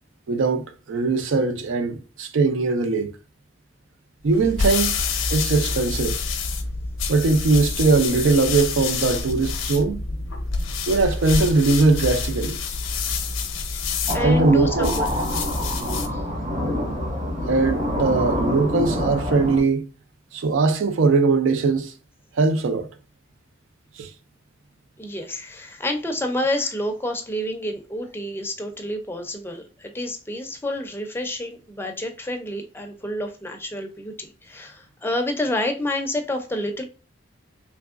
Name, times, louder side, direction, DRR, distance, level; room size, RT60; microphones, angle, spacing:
voice 1, 0.3-3.1 4.2-5.0 5.3-6.2 7.1-10.0 10.9-12.6 14.2-14.9 17.5-19.8 20.3-21.9 22.4-22.9 24.0-24.1, right 3 dB, 80° right, 0.4 m, -20 dB
sound 1, 4.3-16.2, left 4 dB, 85° left, 0.6 m, -27 dB
voice 2, 14.1-15.1 15.6-15.8 16.1-16.2 25.0-36.8, left 1 dB, 10° left, 0.4 m, -29 dB
sound 2, 14.1-19.6, equal, 40° right, 1.3 m, -26 dB
3.5 x 3.0 x 2.4 m
head